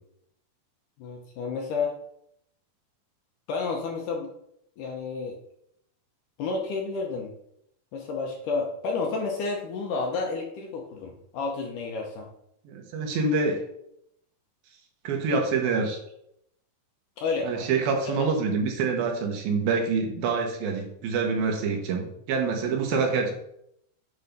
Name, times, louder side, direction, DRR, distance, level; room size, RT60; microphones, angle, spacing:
voice 1, 1.0-1.9 3.5-4.3 4.8-5.4 6.4-7.3 7.9-12.3 17.2-17.7 18.0-18.3 22.9-23.0, left 4 dB, 75° left, 1 dB, 2.0 m, -30 dB
voice 2, 12.7-13.6 15.0-16.0 17.4-23.3, right 4 dB, 75° right, 2 dB, 2.9 m, -26 dB
8.5 x 3.4 x 5.2 m, 0.74 s
omnidirectional pair, 4.4 m